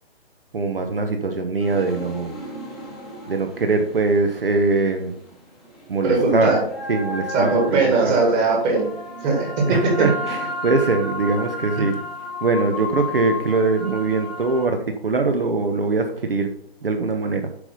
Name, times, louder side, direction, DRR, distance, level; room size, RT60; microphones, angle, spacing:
voice 1, 0.5-2.4 3.3-5.1 5.9-6.5 6.9-8.2 9.7-12.0 12.4-16.5 16.8-17.5, right 3 dB, 60° right, 6 dB, 1.0 m, -22 dB
sound 1, 1.6-5.4 5.6-14.7, left 1 dB, ahead, 1.0 m, -33 dB
voice 2, 6.0-6.6 7.3-8.8 9.2-9.9, right 3 dB, 20° right, 0 dB, 1.9 m, -19 dB
8.2 x 5.2 x 5.3 m, 0.69 s
figure-of-eight pair, 140°, 32 cm